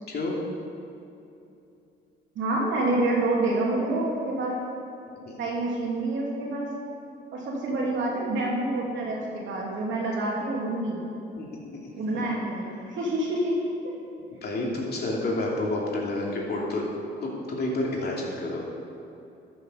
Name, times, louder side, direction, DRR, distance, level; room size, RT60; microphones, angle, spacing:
voice 1, 0.1-0.4 5.2-5.4 11.4-11.9 14.4-16.8 17.2-18.7, left 2 dB, 55° left, -3 dB, 2.7 m, -29 dB
voice 2, 2.3-4.6 5.4-6.7 7.3-11.0 11.9-12.7 13.0-13.6, right 2 dB, 75° right, -3 dB, 2.9 m, -27 dB
13.0 x 7.1 x 5.5 m, 2.7 s
cardioid pair, 90°, 20 cm